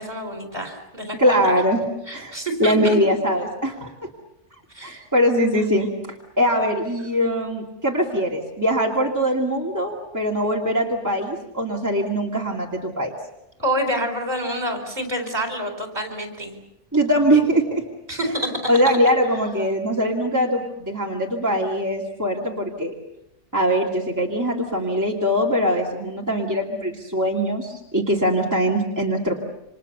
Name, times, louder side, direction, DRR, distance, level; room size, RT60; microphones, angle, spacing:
voice 1, 0.0-1.6 2.1-3.0 4.7-5.0 13.6-16.6 18.1-19.0, equal, 35° right, 5 dB, 4.9 m, -27 dB
voice 2, 1.2-1.8 2.1-2.3 2.6-3.9 4.8-5.9 6.4-13.1 16.9-17.8 18.7-22.9 23.5-29.4, equal, 15° right, -2 dB, 2.6 m, -22 dB
29.0 x 26.5 x 6.9 m, 0.86 s
omnidirectional pair, 1.2 m